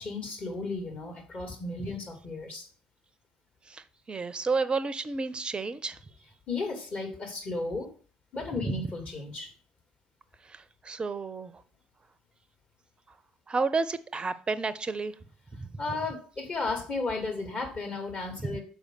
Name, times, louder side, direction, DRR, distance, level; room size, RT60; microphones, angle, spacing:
voice 1, 0.0-2.7 6.5-7.9 8.3-9.5 15.8-18.6, left 3 dB, 35° left, 2.6 m, -34 dB
voice 2, 3.7-6.0 8.6-8.8 10.5-11.5 13.5-15.1 15.5-15.7 18.4-18.6, right 4 dB, 25° right, 0.7 m, -31 dB
6.4 x 5.1 x 6.4 m
figure-of-eight pair, 55°, 4 cm